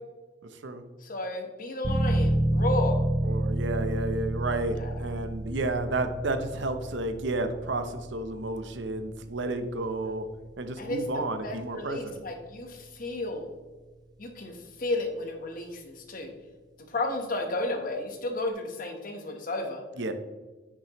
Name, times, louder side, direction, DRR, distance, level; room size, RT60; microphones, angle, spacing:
voice 1, 0.4-0.8 3.2-10.3 10.6-12.2 20.0-20.1, right 2 dB, 80° right, 8 dB, 0.8 m, -31 dB
voice 2, 1.0-3.0 4.8-4.9 10.8-11.0 11.4-13.4 14.2-14.5 14.8-16.3 16.9-19.8, left 2 dB, 50° left, 3 dB, 1.2 m, -32 dB
sound 1, 1.8-12.4, right 1 dB, 20° right, 0.9 m, -30 dB
10.0 x 6.1 x 3.1 m, 1.3 s
head